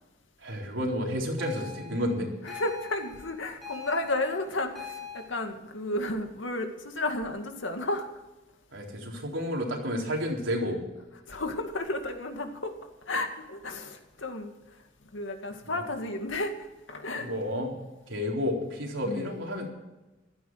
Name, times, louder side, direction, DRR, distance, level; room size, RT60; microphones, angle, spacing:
voice 1, 0.4-2.3 8.7-10.8 15.7-15.8 17.2-17.7 18.1-19.7, equal, 90° right, 0 dB, 3.9 m, -31 dB
sound 1, 1.4-5.2, left 6 dB, ahead, 6.3 m, -43 dB
voice 2, 2.4-8.1 11.3-12.7 13.1-14.6 15.1-17.3 19.0-19.4, left 2 dB, 85° left, 5 dB, 2.2 m, -32 dB
15.5 x 13.0 x 4.8 m, 1.1 s
head